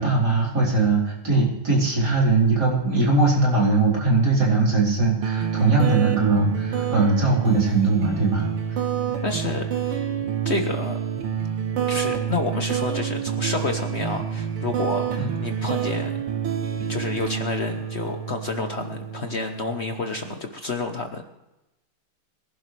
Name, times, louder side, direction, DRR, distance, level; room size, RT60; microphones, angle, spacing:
voice 1, 0.0-8.4 8.7-8.8 15.2-15.3, right 3 dB, 45° right, -4 dB, 4.7 m, -20 dB
sound 1, 5.2-20.3, right 8 dB, 90° right, 2.2 m, -28 dB
voice 2, 9.2-10.0 10.4-11.0 11.9-16.1 16.9-21.2, left 3 dB, 60° left, 5 dB, 0.7 m, -29 dB
22.5 x 11.5 x 3.3 m, 0.95 s
omnidirectional pair, 2.4 m